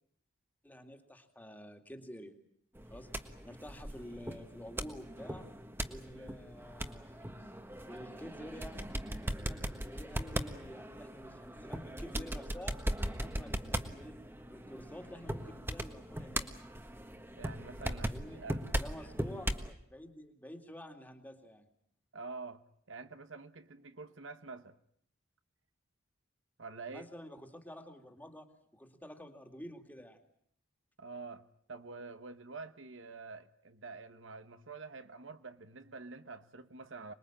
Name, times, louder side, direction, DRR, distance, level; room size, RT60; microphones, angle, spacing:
voice 1, 0.6-2.4 2.9-5.5 5.9-7.5 7.9-8.9 9.5-12.8 13.1-14.1 14.5-16.5 18.0-18.4 18.7-21.7 26.9-28.5 28.7-30.2, equal, 10° left, 2.3 m, -49 dB
sound 1, 2.7-19.7, right 1 dB, 10° right, 1.4 m, -39 dB
voice 2, 17.4-18.7 22.1-22.6 22.9-24.8 26.6-27.1 31.0-37.1, right 4 dB, 70° right, 1.2 m, -47 dB
26.0 x 21.5 x 8.9 m
head